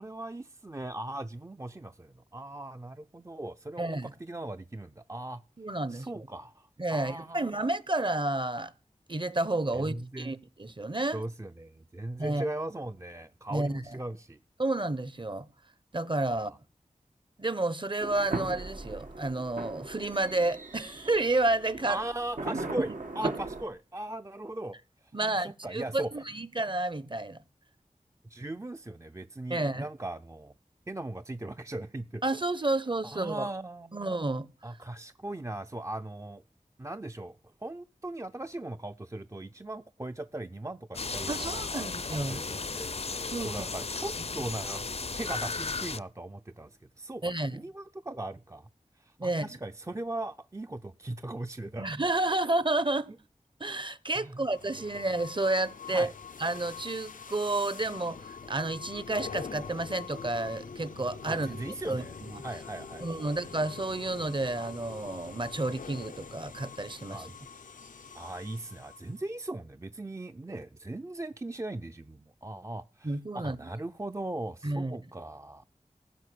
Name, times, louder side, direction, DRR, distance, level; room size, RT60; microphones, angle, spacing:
voice 1, 0.0-5.4 5.9-7.5 9.7-10.4 11.1-14.4 16.3-16.6 21.9-22.9 23.2-24.8 25.2-26.1 28.3-30.5 30.9-32.2 33.0-34.0 34.6-36.4 36.8-37.4 37.6-44.9 45.1-48.7 49.0-51.9 52.3-52.4 54.2-54.5 55.9-56.1 61.3-62.2 62.4-63.3 67.1-67.4 68.1-75.6, right 1 dB, 20° right, 0.5 m, -39 dB
voice 2, 3.8-4.1 5.6-6.3 6.8-8.7 9.1-11.2 12.2-12.4 13.5-14.0 14.6-15.5 15.9-16.5 17.4-22.0 22.5-22.8 23.2-23.3 25.1-27.4 29.5-29.9 32.2-33.5 33.9-34.5 41.3-42.4 43.3-43.5 47.2-47.6 49.2-49.6 51.8-53.1 53.6-56.1 56.4-61.6 61.9-62.5 63.0-67.3 73.0-73.6 74.6-75.0, right 2 dB, 35° right, 0.9 m, -31 dB
sound 1, 18.0-23.6, right 2 dB, 85° right, 2.3 m, -38 dB
sound 2, 40.9-46.0, left 4 dB, 50° left, 0.6 m, -35 dB
sound 3, 54.4-69.2, left 5 dB, 90° left, 0.7 m, -44 dB
15.5 x 5.9 x 8.5 m
wide cardioid pair, 40°, 13 cm